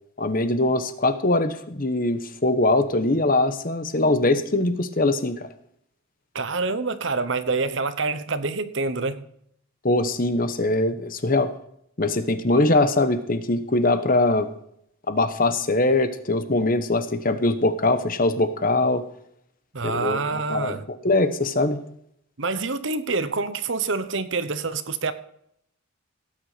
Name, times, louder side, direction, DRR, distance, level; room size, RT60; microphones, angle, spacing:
voice 1, 0.2-5.5 9.8-11.5 12.0-14.5 15.1-19.0 19.8-21.8, left 2 dB, 40° left, 11 dB, 1.1 m, -22 dB
voice 2, 6.3-9.3 12.6-12.7 19.7-20.8 22.4-25.1, right 3 dB, 60° right, 13 dB, 1.0 m, -26 dB
17.5 x 9.2 x 5.1 m, 0.70 s
head